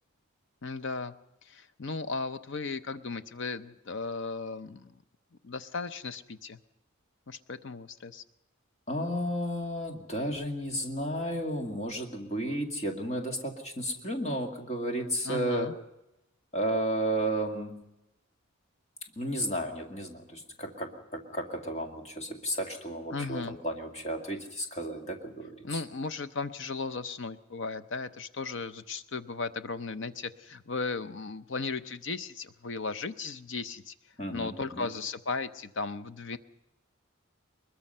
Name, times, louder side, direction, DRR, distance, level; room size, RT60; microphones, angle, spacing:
voice 1, 0.6-1.1 1.5-4.9 5.4-6.6 7.3-8.2 15.2-15.7 23.1-23.6 25.6-33.9 34.3-36.4, left 4 dB, 55° left, 11 dB, 0.7 m, -36 dB
voice 2, 8.9-15.7 16.5-17.8 19.2-25.8 34.2-34.9, right 1 dB, 30° left, 3 dB, 2.1 m, -33 dB
22.0 x 21.5 x 5.5 m, 0.90 s
head